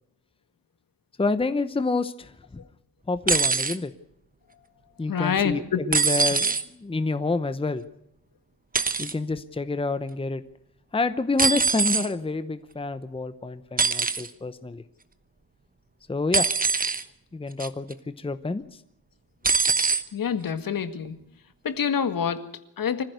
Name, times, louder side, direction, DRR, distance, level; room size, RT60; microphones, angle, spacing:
voice 1, 1.2-2.3 3.1-3.9 5.0-7.8 9.0-10.4 10.9-14.8 16.1-16.5 17.3-18.6, left 3 dB, 15° left, 0.9 m, -28 dB
sound 1, 3.3-3.8 5.9-6.6 8.7-9.1 11.4-12.1 13.8-14.3 16.3-17.0 17.6-17.9 19.4-20.0 21.0-21.1, right 4 dB, 25° right, 1.1 m, -23 dB
voice 2, 5.1-5.9 20.1-21.2 21.6-23.0, left 7 dB, 65° left, 2.0 m, -27 dB
25.0 x 15.5 x 8.1 m
wide cardioid pair, 170°, 36 cm